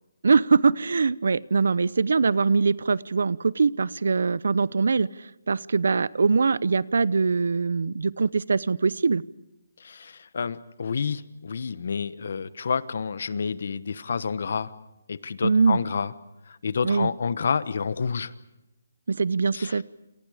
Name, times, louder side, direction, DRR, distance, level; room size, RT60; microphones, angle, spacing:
voice 1, 0.2-5.1 5.5-9.2 15.4-15.8 16.8-17.1 19.1-19.8, right 4 dB, 65° right, 21 dB, 0.8 m, -22 dB
voice 2, 9.8-14.7 15.1-16.1 16.6-18.3 19.5-19.8, left 5 dB, 50° left, 17 dB, 1.1 m, -29 dB
28.0 x 28.0 x 5.0 m, 0.97 s
hypercardioid pair, 175°, 0 cm